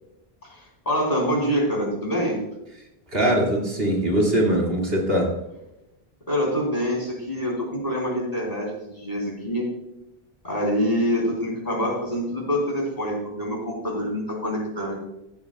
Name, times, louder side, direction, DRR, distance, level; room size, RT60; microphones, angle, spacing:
voice 1, 0.4-2.4 6.3-9.7 10.4-15.0, equal, 40° left, -2 dB, 3.6 m, -26 dB
voice 2, 3.1-5.3, right 1 dB, 65° right, -2 dB, 2.4 m, -21 dB
15.0 x 8.9 x 2.3 m, 0.89 s
omnidirectional pair, 1.1 m